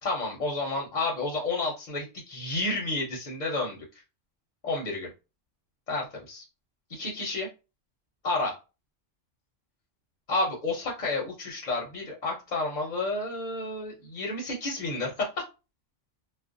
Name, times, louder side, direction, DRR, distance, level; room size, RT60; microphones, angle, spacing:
voice 1, 0.0-3.8 4.6-5.1 5.9-6.4 6.9-7.5 8.2-8.5 10.3-15.3, left 2 dB, 45° left, -1 dB, 0.6 m, -30 dB
2.4 x 2.1 x 2.5 m, 0.29 s
omnidirectional pair, 1.3 m